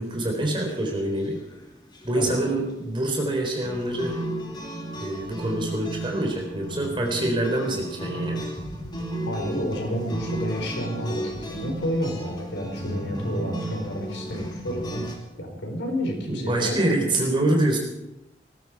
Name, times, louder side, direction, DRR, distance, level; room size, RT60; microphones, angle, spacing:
voice 1, 0.0-1.4 2.0-4.2 5.0-8.4 16.3-17.8, right 1 dB, 25° right, 1 dB, 3.8 m, -25 dB
sound 1, 0.6-1.2 1.5-1.6 2.0-2.2 3.3-15.2, right 1 dB, 25° left, 2.6 m, -34 dB
voice 2, 9.2-15.1 15.4-17.1, equal, 85° left, 2 dB, 4.6 m, -30 dB
19.5 x 15.0 x 4.8 m, 0.97 s
head